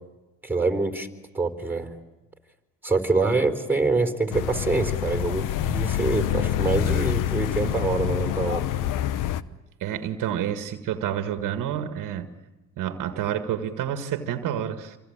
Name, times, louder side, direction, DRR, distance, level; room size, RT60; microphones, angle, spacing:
voice 1, 0.4-1.1 1.3-1.9 2.8-8.7, right 3 dB, 5° right, 4.1 m, -25 dB
sound 1, 4.3-9.4, left 12 dB, 65° left, 1.1 m, -26 dB
voice 2, 9.8-12.3 12.8-15.0, right 10 dB, 65° right, 1.8 m, -29 dB
28.0 x 24.0 x 8.8 m
supercardioid pair, 75°, 34 cm